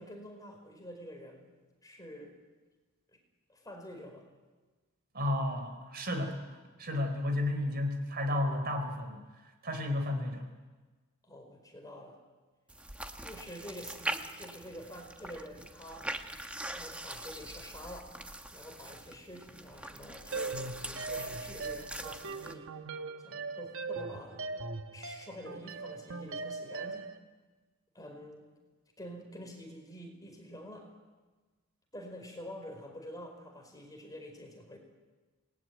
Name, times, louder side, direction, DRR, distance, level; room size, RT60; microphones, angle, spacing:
voice 1, 0.0-1.5 1.8-2.4 3.1-3.2 3.5-4.3 11.2-12.2 13.2-16.1 16.5-18.1 18.5-22.7 23.2-24.6 24.9-27.1 27.9-28.4 29.0-30.9 31.9-34.8, equal, 15° left, 3 dB, 5.0 m, -47 dB
voice 2, 5.1-9.2 9.6-10.5, left 1 dB, 45° right, 6 dB, 4.2 m, -32 dB
gore blood flesh gurgle, 12.7-22.5, right 1 dB, 5° right, 1.3 m, -42 dB
sound 1, 20.3-27.2, right 3 dB, 60° right, 1.3 m, -40 dB
28.0 x 20.5 x 9.6 m, 1.3 s
head